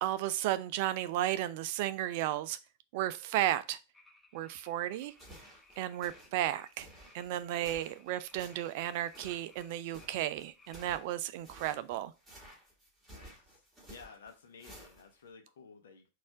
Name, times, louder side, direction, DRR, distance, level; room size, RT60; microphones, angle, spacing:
voice 1, 0.0-2.6 2.9-3.8 4.3-5.1 5.8-6.9 7.1-12.1, right 13 dB, 50° right, 0.4 m, -33 dB
sound 1, 3.9-11.0, left 3 dB, 10° left, 1.4 m, -62 dB
sound 2, 5.0-15.3, right 1 dB, 10° right, 1.9 m, -54 dB
voice 2, 13.1-13.6 13.9-16.1, left 5 dB, 60° left, 0.7 m, -54 dB
4.1 x 2.4 x 4.4 m
figure-of-eight pair, 90°, 0 cm